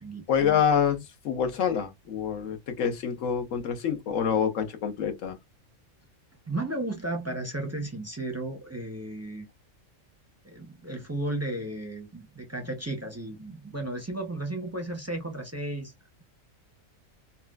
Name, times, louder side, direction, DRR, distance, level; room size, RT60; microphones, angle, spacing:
voice 1, 0.3-5.4, left 7 dB, 75° left, 1.2 m, -26 dB
voice 2, 6.5-9.5 10.4-15.9, right 2 dB, 20° right, 0.5 m, -34 dB
4.2 x 2.2 x 2.3 m
omnidirectional pair, 1.4 m